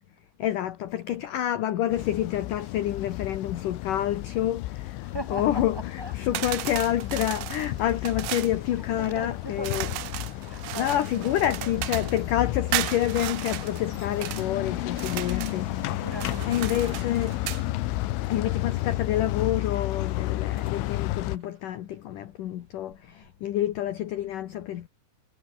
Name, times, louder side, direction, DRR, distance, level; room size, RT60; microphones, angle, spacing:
voice 1, 0.4-9.9 10.8-15.9 16.5-17.5 18.3-24.9, left 12 dB, 65° left, 2.2 m, -28 dB
sound 1, 1.9-21.4, left 17 dB, 90° left, 3.6 m, -32 dB
voice 2, 5.0-6.4 7.5-8.0 8.7-10.1 10.4-12.3 15.8-17.4, equal, 5° right, 6.5 m, -41 dB
sound 2, 6.3-8.6 9.6-12.2 12.7-14.5 14.9-15.6 16.1-17.6, right 17 dB, 85° right, 2.1 m, -35 dB
sound 3, 7.2-22.2 22.8-24.0, right 6 dB, 40° right, 4.6 m, -50 dB
omnidirectional pair, 5.4 m